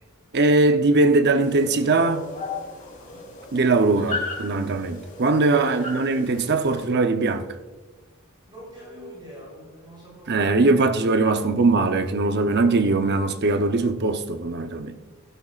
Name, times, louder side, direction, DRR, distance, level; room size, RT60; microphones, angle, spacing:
voice 1, 0.3-2.3 3.5-7.5 10.3-15.0, right 3 dB, 50° right, 0.7 m, -21 dB
sound 1, 1.4-6.8, left 3 dB, 40° left, 4.1 m, -36 dB
voice 2, 3.0-3.3 5.7-6.0 8.5-11.5, equal, 20° right, 3.8 m, -44 dB
15.5 x 12.5 x 2.4 m
head